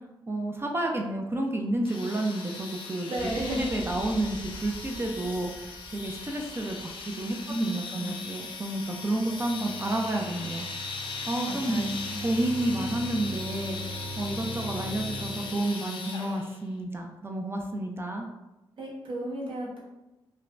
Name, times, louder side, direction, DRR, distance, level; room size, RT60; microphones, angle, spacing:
voice 1, 0.3-3.1 3.6-10.7 11.3-11.8 12.2-13.8 14.2-18.3, right 1 dB, 25° right, 1 dB, 0.4 m, -30 dB
sound 1, 1.8-16.6, left 4 dB, 65° left, 0.4 m, -39 dB
voice 2, 3.1-3.7 7.5-7.6 8.0-8.1 9.1-9.4 11.2-12.2 18.8-19.8, right 1 dB, 65° right, -5 dB, 1.0 m, -33 dB
sound 2, 3.2-9.9, left 1 dB, 5° right, 0.8 m, -46 dB
sound 3, 9.0-15.8, left 1 dB, 90° right, 1.2 m, -41 dB
2.6 x 2.1 x 3.0 m, 0.99 s
cardioid pair, 75°, 9 cm